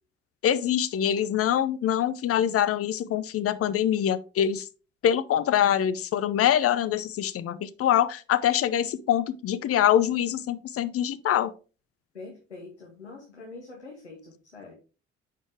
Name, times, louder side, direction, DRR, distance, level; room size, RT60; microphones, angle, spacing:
voice 1, 0.4-4.7 5.0-11.5, left 10 dB, 45° left, 0.6 m, -24 dB
voice 2, 12.1-14.7, left 3 dB, 85° left, 1.0 m, -44 dB
9.3 x 4.2 x 3.4 m
figure-of-eight pair, 40°, 33 cm